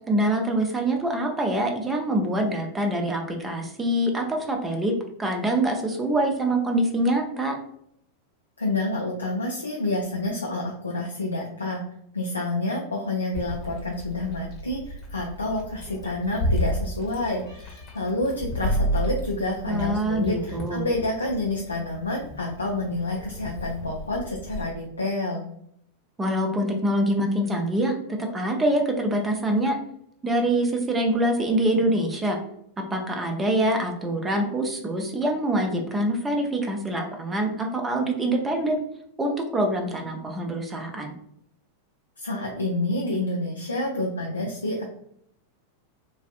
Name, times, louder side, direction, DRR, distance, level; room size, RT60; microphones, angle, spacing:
voice 1, 0.1-4.9 5.2-7.5 19.7-20.9 26.2-29.8 30.2-32.4 32.9-38.8 39.2-41.1, right 1 dB, 15° right, 3 dB, 0.6 m, -25 dB
voice 2, 8.6-11.8 12.1-25.5 42.2-44.9, left 2 dB, 80° left, -1 dB, 0.5 m, -28 dB
Meow, 13.3-24.6, equal, 40° left, 1.1 m, -32 dB
3.9 x 2.5 x 2.4 m, 0.71 s
figure-of-eight pair, 90°, 0 cm